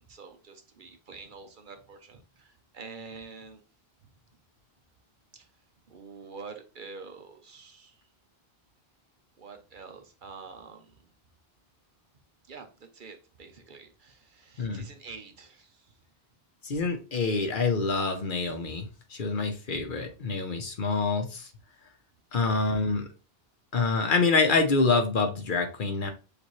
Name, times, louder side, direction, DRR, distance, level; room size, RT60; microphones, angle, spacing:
voice 1, 0.1-3.6 5.3-5.5 5.9-8.0 9.4-11.1 12.5-15.9, right 4 dB, 55° right, 0.9 m, -47 dB
voice 2, 16.6-21.5 22.3-23.1 23.7-26.1, left 4 dB, 55° left, 0.9 m, -26 dB
6.7 x 2.6 x 3.1 m
omnidirectional pair, 1.0 m